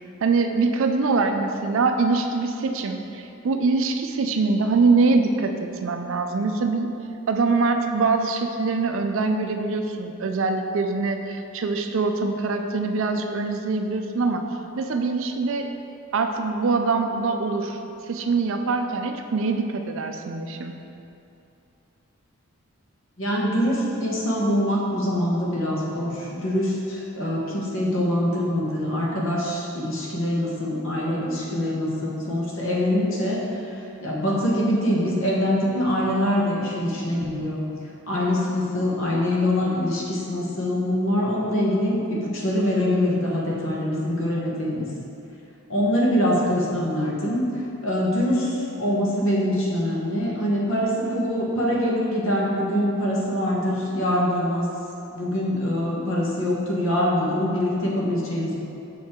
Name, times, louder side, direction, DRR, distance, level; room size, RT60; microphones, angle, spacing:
voice 1, 0.2-6.9 7.3-14.4 14.8-15.7 16.1-17.8 18.1-20.7, right 4 dB, 60° right, 5 dB, 0.4 m, -23 dB
voice 2, 23.2-33.4 34.0-37.7 38.1-44.9 45.7-47.4 47.8-54.6 55.1-58.6, left 1 dB, 60° left, -4 dB, 1.1 m, -24 dB
6.2 x 4.5 x 3.6 m, 2.7 s
head